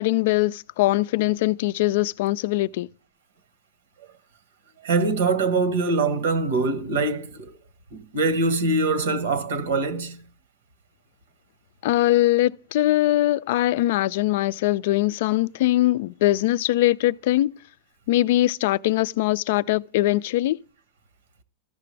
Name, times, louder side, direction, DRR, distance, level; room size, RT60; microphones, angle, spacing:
voice 1, 0.0-2.9 11.8-17.5 18.1-20.6, left 16 dB, 65° left, 0.3 m, -21 dB
voice 2, 4.8-7.5 7.9-10.2, right 3 dB, 85° right, 1.3 m, -23 dB
14.0 x 5.9 x 3.3 m
supercardioid pair, 135°, 0 cm